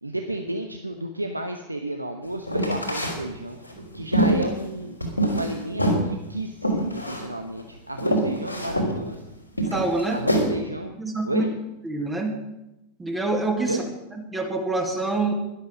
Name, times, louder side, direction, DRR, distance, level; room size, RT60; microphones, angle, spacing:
voice 1, 0.0-5.0 5.3-9.3 10.1-10.9 11.2-11.5 13.6-13.9, right 1 dB, 85° right, 6 dB, 0.9 m, -32 dB
sound 1, 2.5-3.2 3.6-5.5 5.8-6.0 6.6-7.3 7.6-7.7 8.0-8.9 9.6-10.5, right 1 dB, 90° left, 3.3 m, -24 dB
voice 2, 9.7-10.2 11.0-11.4 11.8-12.4 13.0-13.8 14.3-15.3, right 2 dB, 15° right, 2 dB, 1.9 m, -26 dB
12.5 x 11.5 x 6.3 m, 0.93 s
figure-of-eight pair, 90°, 0 cm